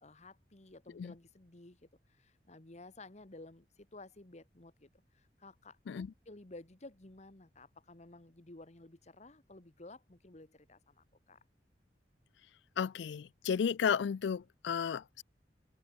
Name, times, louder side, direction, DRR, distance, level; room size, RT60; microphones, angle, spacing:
voice 1, 0.0-11.4, left 2 dB, 40° left, 1.5 m, -54 dB
voice 2, 12.8-15.2, left 7 dB, 80° left, 0.4 m, -33 dB
open air
head